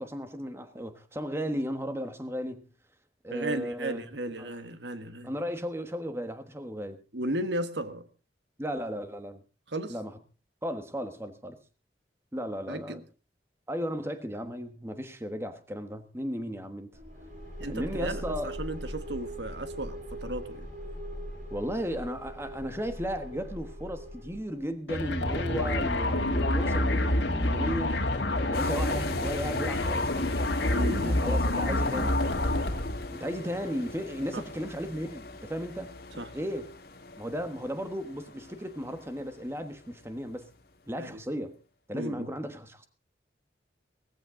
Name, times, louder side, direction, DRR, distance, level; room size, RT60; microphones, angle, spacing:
voice 1, 0.0-2.7 3.2-4.1 4.4-4.5 5.2-7.0 8.6-9.4 9.9-10.2 10.6-11.6 12.3-13.0 13.7-16.9 17.6-18.5 21.5-28.0 28.3-30.3 30.9-32.2 33.1-36.7 37.2-40.5 40.9-41.6 41.9-42.9, equal, 15° right, 1.3 m, -35 dB
voice 2, 3.3-5.3 7.1-8.1 9.7-9.9 12.7-13.0 17.6-20.7 30.7-31.2 34.3-34.4 36.2-36.3 41.0-41.2 41.9-42.3, right 1 dB, 80° right, 1.4 m, -35 dB
sound 1, 16.9-24.7, equal, 45° right, 5.5 m, -40 dB
sound 2, 24.9-33.1, left 1 dB, 75° left, 2.1 m, -27 dB
sound 3, 28.5-40.6, left 2 dB, 55° left, 2.1 m, -40 dB
17.5 x 15.0 x 3.8 m
head